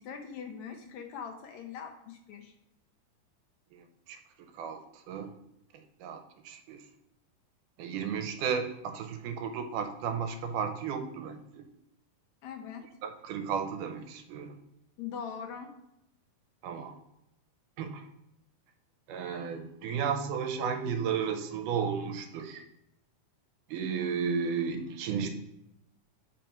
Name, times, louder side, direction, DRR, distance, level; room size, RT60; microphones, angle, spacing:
voice 1, 0.0-2.5 12.4-12.8 15.0-15.7, left 7 dB, 75° left, 3 dB, 1.8 m, -41 dB
voice 2, 3.7-5.3 5.7-6.8 7.8-11.6 13.0-14.6 16.6-17.0 17.8-18.1 19.1-22.6 23.7-25.3, right 6 dB, 85° right, 7 dB, 2.2 m, -34 dB
5.4 x 4.4 x 5.4 m, 0.81 s
omnidirectional pair, 3.7 m